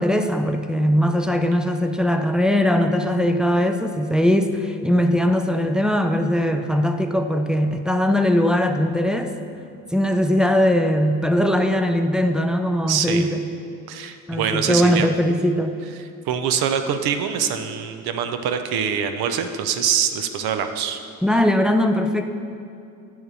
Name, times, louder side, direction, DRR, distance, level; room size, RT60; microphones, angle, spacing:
voice 1, 0.0-9.3 9.9-13.4 14.3-15.8 21.2-22.2, equal, ahead, 5 dB, 0.5 m, -20 dB
voice 2, 12.9-13.3 13.9-15.1 16.3-21.0, right 8 dB, 55° right, 8 dB, 0.7 m, -24 dB
9.1 x 3.7 x 6.1 m, 2.5 s
figure-of-eight pair, 40°, 44 cm